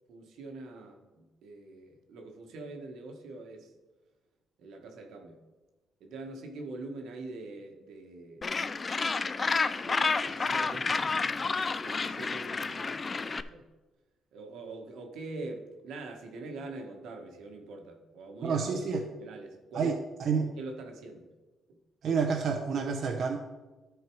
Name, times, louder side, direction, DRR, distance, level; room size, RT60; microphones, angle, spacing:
voice 1, 0.1-3.7 4.6-5.4 6.0-8.6 9.8-10.9 11.8-13.0 13.3-13.6 14.3-18.7 19.2-20.0 20.4-21.3 21.7-21.8, right 2 dB, 80° right, 3 dB, 1.4 m, -43 dB
Gull seagull, 8.4-13.4, left 4 dB, 30° left, 0.4 m, -30 dB
voice 2, 18.4-19.0 19.7-20.5 22.0-23.4, right 5 dB, 60° right, 1 dB, 0.9 m, -29 dB
12.5 x 4.7 x 4.7 m, 1.2 s
cardioid pair, 90°, 0 cm